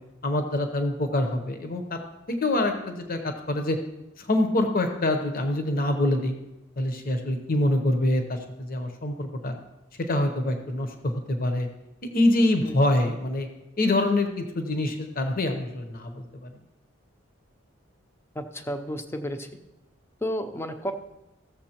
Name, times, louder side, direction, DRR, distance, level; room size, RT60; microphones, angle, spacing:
voice 1, 0.2-2.0 2.3-3.8 4.2-6.3 6.8-9.5 10.0-11.7 12.0-13.5 13.8-16.5, left 1 dB, 45° left, 6 dB, 0.8 m, -25 dB
voice 2, 18.4-19.5 20.2-20.9, equal, 10° left, 7 dB, 0.6 m, -32 dB
15.5 x 7.1 x 2.9 m, 0.96 s
head